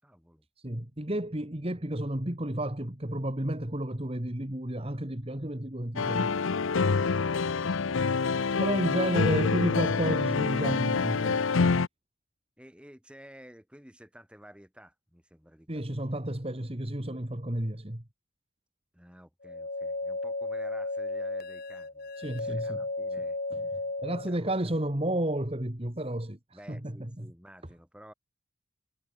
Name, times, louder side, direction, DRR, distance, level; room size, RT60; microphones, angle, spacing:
voice 1, 0.0-0.5 1.0-1.1 7.2-7.6 12.6-16.0 18.9-23.4 24.0-24.8 26.5-28.1, equal, 5° right, 6.9 m, -53 dB
voice 2, 0.6-6.3 8.6-11.4 15.7-18.0 22.2-22.8 23.5-23.6 24.0-26.4 26.7-27.3, right 1 dB, 30° right, 2.0 m, -31 dB
sound 1, 6.0-11.9, left 4 dB, 80° left, 0.6 m, -26 dB
sound 2, 19.4-24.4, left 2 dB, 50° left, 1.6 m, -34 dB
head